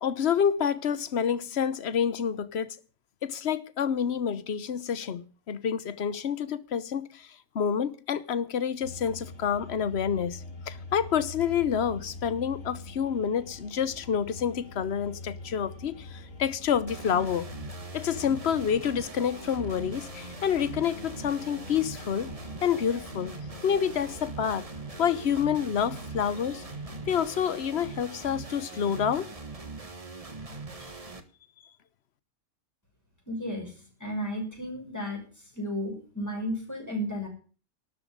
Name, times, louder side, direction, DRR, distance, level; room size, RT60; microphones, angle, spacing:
voice 1, 0.0-2.8 3.2-7.3 7.5-17.5 17.9-22.3 22.6-23.3 23.6-24.7 25.0-26.6 27.1-29.2, left 8 dB, 60° left, 1.2 m, -28 dB
sound 1, 8.8-27.2, left 3 dB, 75° left, 2.7 m, -45 dB
sound 2, 16.9-31.2, right 3 dB, 30° right, 1.5 m, -42 dB
voice 2, 33.3-35.2 35.5-37.3, equal, 15° left, 6.2 m, -33 dB
12.5 x 7.6 x 9.9 m
omnidirectional pair, 1.3 m